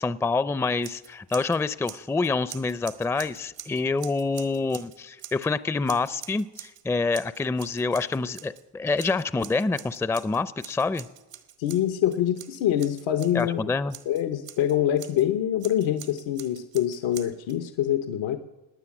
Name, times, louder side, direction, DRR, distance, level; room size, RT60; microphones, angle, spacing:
voice 1, 0.0-11.1 13.3-13.9, left 3 dB, 5° left, 16 dB, 0.5 m, -27 dB
Scissors, 0.8-1.6 1.8-5.5 5.9-6.8 7.1-8.6 9.0-13.5 13.9-15.2 15.6-17.6, right 11 dB, 80° right, 1.5 m, -45 dB
voice 2, 11.6-13.7 14.1-18.4, left 11 dB, 80° left, 9 dB, 1.0 m, -25 dB
19.0 x 9.7 x 7.3 m, 1.1 s
cardioid pair, 80°, 45 cm